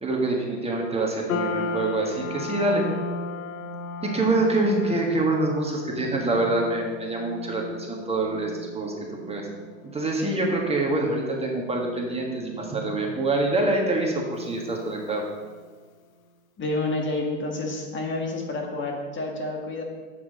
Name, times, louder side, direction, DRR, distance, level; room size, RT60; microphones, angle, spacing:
voice 1, 0.0-2.8 4.0-9.5 9.9-15.2, right 2 dB, 15° right, -1 dB, 1.5 m, -25 dB
sound 1, 1.3-15.7, left 3 dB, 85° left, 0.9 m, -37 dB
voice 2, 16.6-19.8, left 2 dB, 30° left, 1 dB, 1.5 m, -29 dB
8.4 x 6.2 x 4.1 m, 1.4 s
hypercardioid pair, 95°, 41 cm